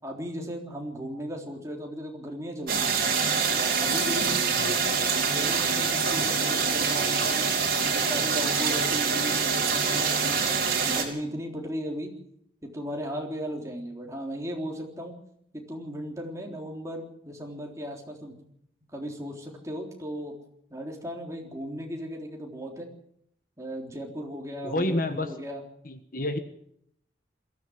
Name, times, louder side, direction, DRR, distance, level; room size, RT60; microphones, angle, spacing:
voice 1, 0.0-2.9 3.5-7.5 7.8-10.5 10.8-12.1 12.6-15.2 15.5-18.3 18.9-20.3 20.7-22.9 23.6-25.6, equal, 15° right, 0 dB, 3.7 m, -36 dB
sound 1, 2.7-11.0, right 5 dB, 50° right, 4.3 m, -25 dB
voice 2, 24.6-25.3 25.8-26.4, left 1 dB, 50° left, 9 dB, 1.4 m, -29 dB
22.0 x 15.0 x 8.0 m, 0.71 s
head